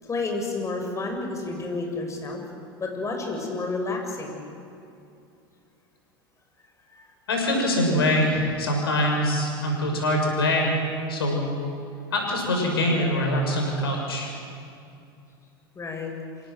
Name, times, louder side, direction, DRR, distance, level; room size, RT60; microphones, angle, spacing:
voice 1, 0.0-2.4 2.8-4.4 6.9-7.1 15.7-16.1, left 3 dB, 25° left, 2 dB, 6.5 m, -30 dB
voice 2, 7.3-10.8 11.1-11.5 12.1-14.3, left 1 dB, 85° left, 1 dB, 6.6 m, -24 dB
27.0 x 17.5 x 7.8 m, 2.5 s
hypercardioid pair, 85°, 12 cm